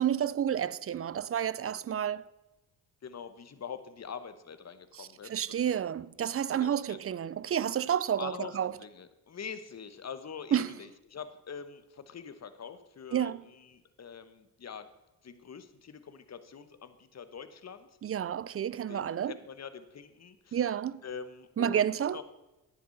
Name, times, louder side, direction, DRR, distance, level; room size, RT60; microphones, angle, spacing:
voice 1, 0.0-2.2 4.9-8.7 10.5-10.7 13.1-13.4 18.0-19.3 20.5-21.0 21.6-22.2, right 9 dB, 35° right, 0.5 m, -30 dB
voice 2, 3.0-5.6 6.5-7.0 8.2-14.9 15.2-17.9 18.9-20.6 21.0-21.8 22.1-22.2, left 6 dB, 40° left, 1.2 m, -44 dB
10.5 x 10.0 x 4.1 m
supercardioid pair, 70°, 39 cm